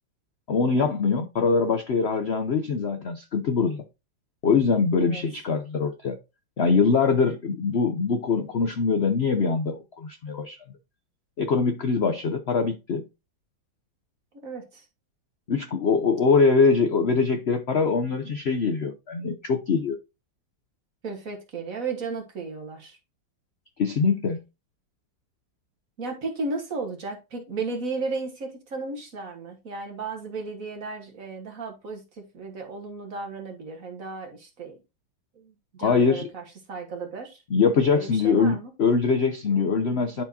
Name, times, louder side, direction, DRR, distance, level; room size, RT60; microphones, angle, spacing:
voice 1, 0.5-3.8 4.4-6.2 6.6-10.6 11.4-13.0 15.5-20.0 23.8-24.4 35.8-36.3 37.5-40.2, left 5 dB, 75° left, 0.6 m, -23 dB
voice 2, 14.3-14.9 21.0-23.0 26.0-34.8 35.4-37.4 37.9-38.7 39.5-40.2, right 3 dB, 45° right, 1.8 m, -35 dB
11.0 x 4.6 x 2.7 m
omnidirectional pair, 2.1 m